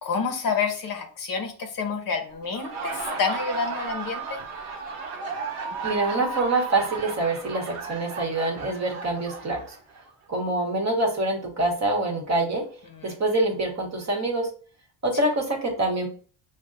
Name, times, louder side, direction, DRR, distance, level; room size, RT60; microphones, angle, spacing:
voice 1, 0.0-4.2, left 5 dB, 45° left, 5 dB, 0.7 m, -28 dB
Laughter, 2.4-10.1, right 4 dB, 90° right, 0.8 m, -34 dB
voice 2, 5.8-9.8 10.3-12.6 13.0-14.5 15.0-16.1, right 2 dB, 35° right, 2 dB, 1.1 m, -25 dB
5.2 x 2.1 x 2.5 m, 0.42 s
cardioid pair, 95°, 47 cm